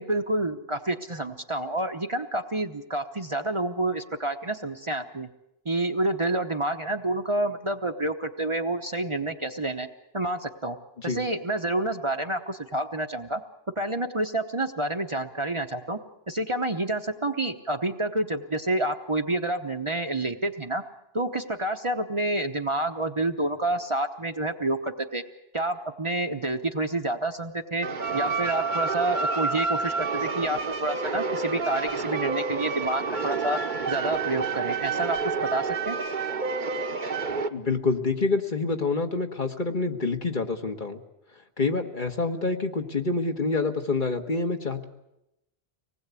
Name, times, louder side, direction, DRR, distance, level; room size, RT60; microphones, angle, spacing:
voice 1, 0.0-5.3 5.6-9.9 10.1-10.8 11.0-13.4 13.8-16.0 16.3-20.8 21.1-25.2 25.5-27.9 28.1-33.6 33.9-36.0, right 2 dB, 30° right, 6 dB, 1.0 m, -28 dB
sound 1, 27.8-37.5, right 4 dB, 50° right, 1.2 m, -29 dB
voice 2, 37.5-41.0 41.6-44.8, left 3 dB, 50° left, 5 dB, 1.6 m, -27 dB
25.0 x 19.5 x 8.3 m, 0.88 s
omnidirectional pair, 1.1 m